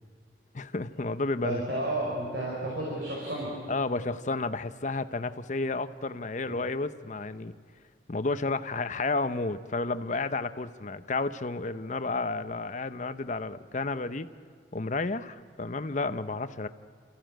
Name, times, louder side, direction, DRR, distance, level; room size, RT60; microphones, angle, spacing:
voice 1, 0.5-1.6 3.7-7.5 8.1-14.3 14.7-16.7, left 3 dB, 45° left, 11 dB, 0.7 m, -31 dB
voice 2, 1.4-3.5 6.4-6.6, right 1 dB, 60° right, -4 dB, 5.4 m, -32 dB
28.5 x 15.0 x 9.1 m, 2.1 s
head